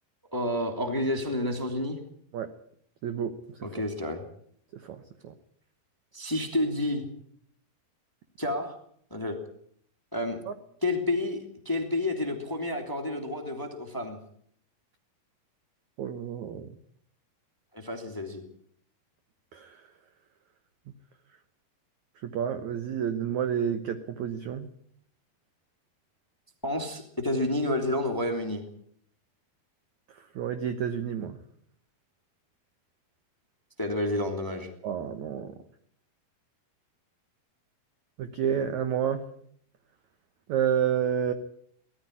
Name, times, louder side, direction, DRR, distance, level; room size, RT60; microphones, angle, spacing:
voice 1, 0.3-2.0 3.6-4.2 6.1-7.0 8.4-8.7 9.1-9.3 10.1-10.4 10.8-14.2 17.7-18.4 26.6-28.6 33.8-34.7, left 1 dB, 5° left, 5 dB, 1.8 m, -30 dB
voice 2, 3.0-3.3 4.7-5.3 10.5-10.6 16.0-16.7 19.5-19.8 22.2-24.7 30.4-31.4 34.8-35.5 38.2-39.2 40.5-41.3, right 8 dB, 70° right, 9 dB, 1.9 m, -29 dB
19.0 x 14.0 x 9.8 m, 0.65 s
omnidirectional pair, 4.7 m